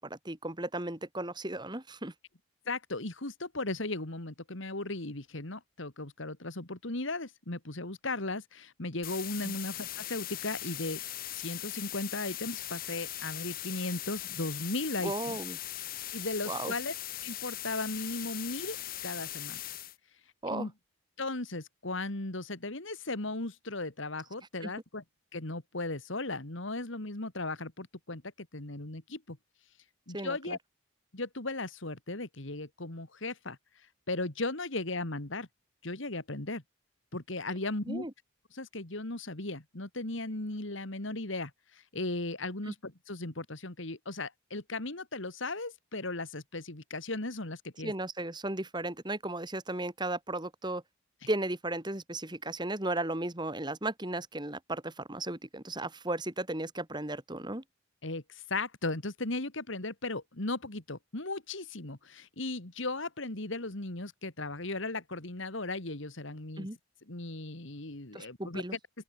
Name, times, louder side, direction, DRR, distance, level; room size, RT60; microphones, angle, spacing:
voice 1, 0.0-2.1 9.4-9.5 15.0-15.6 16.5-16.7 20.4-20.7 24.6-24.7 30.1-30.6 37.9-38.1 42.7-42.8 47.8-50.8 51.3-57.6 66.6-66.8 68.1-68.8, right 2 dB, 20° right, 2.7 m, -35 dB
voice 2, 2.7-11.0 11.3-15.4 16.1-16.9 17.2-18.8 19.0-19.6 20.5-20.7 21.2-25.0 25.3-29.4 30.1-30.6 31.1-33.6 34.1-35.5 35.8-36.6 37.1-38.1 38.5-47.9 58.0-66.7 67.1-68.6, left 2 dB, 65° left, 2.4 m, -36 dB
sound 1, 9.0-20.0, left 14 dB, 45° left, 0.9 m, -40 dB
open air
head